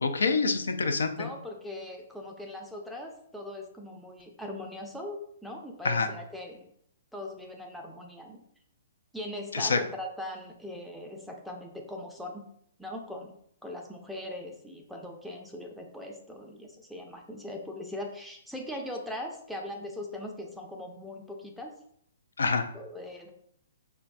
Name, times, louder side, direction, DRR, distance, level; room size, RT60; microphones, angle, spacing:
voice 1, 0.0-1.3 5.8-6.1 9.5-9.8 22.4-22.6, left 4 dB, 75° left, 6 dB, 0.4 m, -26 dB
voice 2, 1.2-6.7 7.1-8.4 9.1-12.4 12.8-13.3 13.6-21.7 22.7-23.3, left 1 dB, ahead, 1 dB, 0.5 m, -40 dB
4.5 x 2.2 x 2.5 m, 0.68 s
figure-of-eight pair, 125°, 0 cm